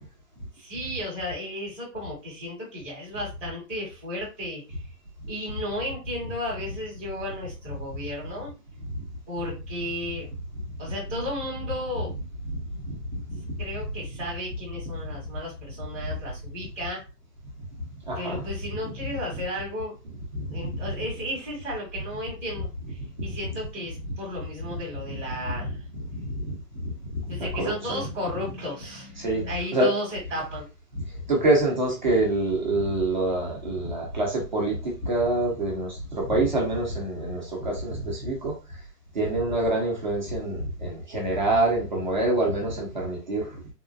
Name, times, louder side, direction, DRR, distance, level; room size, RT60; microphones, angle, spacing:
voice 1, 0.5-4.6 5.3-8.5 9.3-10.3 10.8-12.2 13.6-17.0 18.1-19.9 20.5-25.8 27.3-30.7, left 1 dB, 10° left, -13 dB, 0.6 m, -34 dB
voice 2, 12.8-13.2 13.5-13.6 18.1-18.5 18.8-18.9 20.5-20.9 23.3-23.4 24.7-24.8 25.3-26.6 27.1-28.0 29.2-29.4 29.7-29.9 30.9-31.0 31.3-38.5 39.1-43.5, right 2 dB, 30° right, -2 dB, 0.7 m, -26 dB
3.6 x 2.3 x 2.4 m, 0.30 s
hypercardioid pair, 170°, 48 cm